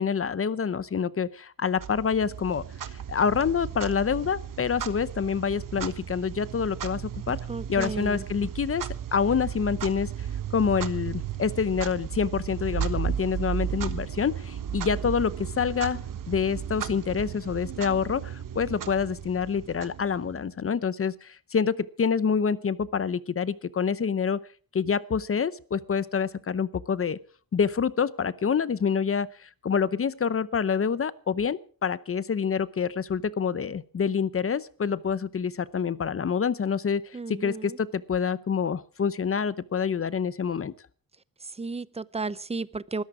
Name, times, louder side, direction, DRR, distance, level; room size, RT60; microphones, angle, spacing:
voice 1, 0.0-2.6 2.9-8.9 9.1-10.1 10.5-16.0 16.3-24.4 24.7-27.2 27.5-40.7, left 6 dB, 40° left, 0.7 m, -27 dB
Clock, 1.8-20.5, right 9 dB, 65° right, 1.3 m, -35 dB
voice 2, 7.5-8.2 37.1-37.8 41.4-43.0, right 3 dB, 20° right, 0.6 m, -34 dB
20.0 x 14.0 x 4.9 m
wide cardioid pair, 115°, 34 cm